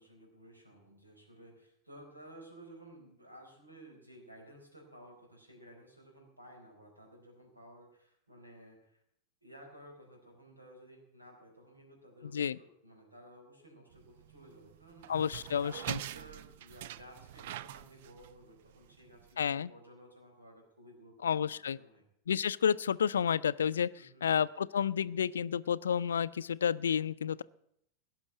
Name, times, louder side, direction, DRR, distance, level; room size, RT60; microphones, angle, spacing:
voice 1, 0.0-9.0 9.4-15.4 15.9-22.0 24.0-24.4, right 1 dB, 85° right, 1 dB, 4.5 m, -55 dB
sound 1, 13.9-19.3, right 13 dB, 55° right, 0.5 m, -45 dB
voice 2, 15.1-16.0 19.4-19.7 21.2-21.8 22.3-23.9 24.2-27.4, left 8 dB, 65° left, 17 dB, 0.4 m, -30 dB
17.5 x 6.1 x 9.4 m, 0.75 s
figure-of-eight pair, 90°, 0 cm